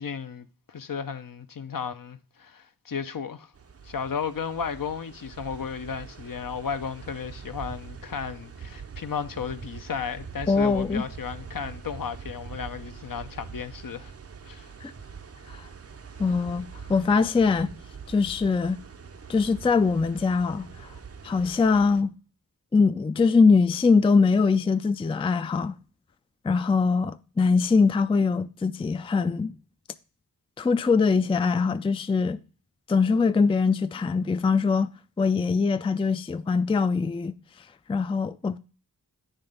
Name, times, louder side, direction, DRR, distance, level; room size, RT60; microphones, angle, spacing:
voice 1, 0.0-3.5 3.8-14.1 14.4-14.7 16.8-16.9, left 6 dB, 55° left, 0.6 m, -34 dB
sound 1, 3.5-22.0, right 6 dB, 40° right, 0.6 m, -43 dB
voice 2, 10.5-11.0 14.8-14.9 15.5-15.7 16.2-17.7 18.1-18.8 19.3-20.9 21.2-22.1 22.7-25.8 26.4-29.5 30.6-32.4 32.9-34.9 35.2-37.4 37.9-38.6, left 4 dB, 15° left, 0.4 m, -22 dB
8.9 x 3.3 x 5.1 m
cardioid pair, 45°, 39 cm